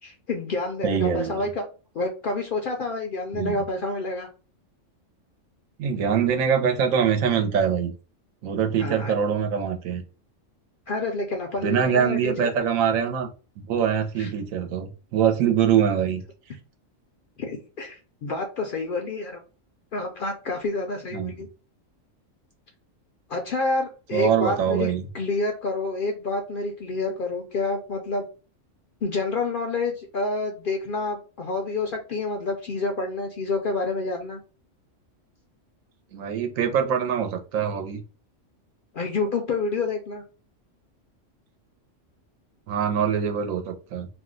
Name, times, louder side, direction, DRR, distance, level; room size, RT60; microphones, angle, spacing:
voice 1, 0.0-1.7 1.9-4.3 8.8-9.1 10.9-12.5 14.2-14.3 17.4-19.4 19.9-21.5 23.3-28.3 29.0-34.4 38.9-40.2, left 3 dB, 65° left, 3 dB, 0.5 m, -28 dB
voice 2, 0.8-1.4 3.3-3.6 5.8-7.9 8.4-10.0 11.6-13.3 13.7-16.2 21.1-21.3 24.1-25.0 36.1-38.0 42.7-44.1, right 8 dB, 85° right, 4 dB, 1.0 m, -23 dB
2.6 x 2.1 x 3.7 m, 0.35 s
omnidirectional pair, 1.3 m